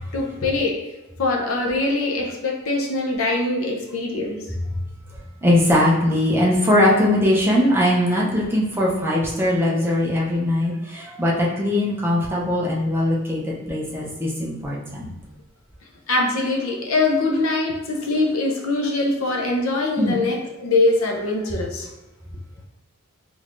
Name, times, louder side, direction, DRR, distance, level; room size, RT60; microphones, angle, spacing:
voice 1, 0.1-0.8 1.2-4.4 16.1-21.9, left 2 dB, 80° left, 1 dB, 0.6 m, -22 dB
voice 2, 5.1-15.1 20.0-20.2, left 1 dB, 10° right, -5 dB, 0.5 m, -20 dB
3.3 x 3.2 x 2.5 m, 0.96 s
head